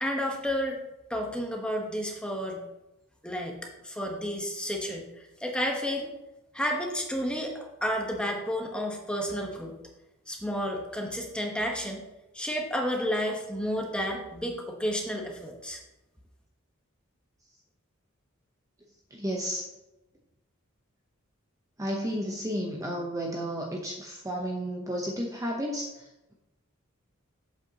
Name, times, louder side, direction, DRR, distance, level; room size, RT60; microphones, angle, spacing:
voice 1, 0.0-0.8 1.1-2.6 3.2-3.6 3.8-5.1 5.4-6.1 6.5-9.8 10.3-12.1 12.3-15.8, equal, 5° left, 1 dB, 1.1 m, -31 dB
voice 2, 19.1-19.7 21.8-26.3, equal, 15° right, 0 dB, 0.8 m, -32 dB
8.2 x 7.4 x 2.9 m, 0.96 s
head